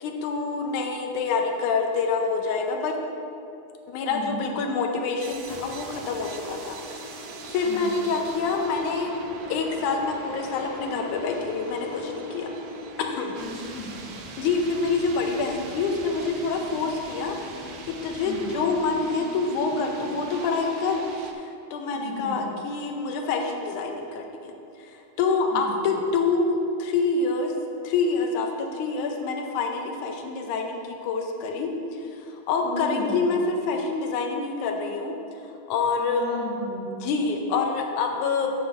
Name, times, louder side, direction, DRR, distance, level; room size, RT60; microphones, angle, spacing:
voice 1, 0.0-2.9 3.9-7.2 7.5-9.2 9.5-12.5 13.0-13.3 14.4-17.5 18.0-21.0 21.7-24.5 24.8-24.9 25.2-27.5 27.8-35.1 35.7-36.2 37.0-38.5, left 4 dB, 80° left, 2 dB, 2.2 m, -26 dB
voice 2, 4.1-4.4 7.6-7.9 13.4-13.9 18.2-18.5 21.9-22.4 25.5-25.8 32.6-33.2 36.0-36.9, left 2 dB, 55° left, -7 dB, 3.0 m, -34 dB
sound 1, 5.2-21.3, right 2 dB, 80° right, 1.3 m, -40 dB
10.0 x 3.9 x 6.9 m, 2.6 s
omnidirectional pair, 3.5 m